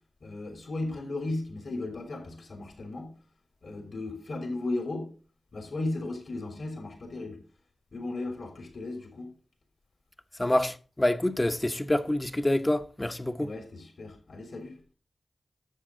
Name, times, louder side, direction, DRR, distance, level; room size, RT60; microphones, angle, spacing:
voice 1, 0.2-3.1 3.6-5.1 5.5-7.4 7.9-9.3 13.4-14.7, left 2 dB, 70° left, 3.2 m, -35 dB
voice 2, 10.4-13.5, left 1 dB, 20° left, 0.8 m, -27 dB
11.0 x 7.5 x 3.7 m
wide cardioid pair, 75°, 0 cm